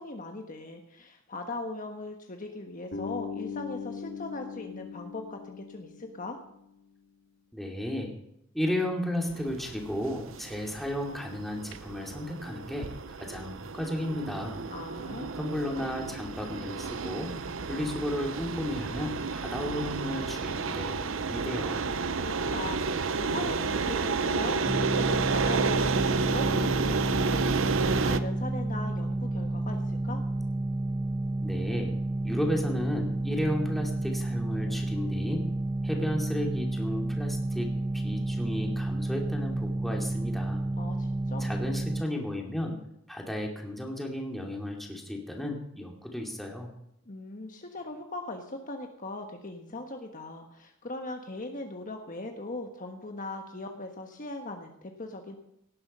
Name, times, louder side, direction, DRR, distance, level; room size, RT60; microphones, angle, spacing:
voice 1, 0.0-6.4 14.7-15.3 22.2-30.2 40.8-41.5 47.1-55.4, left 2 dB, 40° left, 4 dB, 1.4 m, -39 dB
Bass guitar, 2.9-6.9, left 6 dB, 55° left, 2.2 m, -40 dB
voice 2, 7.5-8.1 8.5-12.9 13.2-14.6 15.3-17.3 17.7-21.9 31.4-31.9 32.2-35.4 35.8-37.7 38.0-40.6 41.4-42.8 43.1-46.7, left 1 dB, ahead, 0 dB, 2.7 m, -33 dB
sound 1, 9.3-28.2, right 4 dB, 75° right, 0.8 m, -31 dB
sound 2, 24.6-42.0, right 2 dB, 15° right, 0.5 m, -31 dB
17.5 x 11.0 x 5.6 m, 0.78 s
head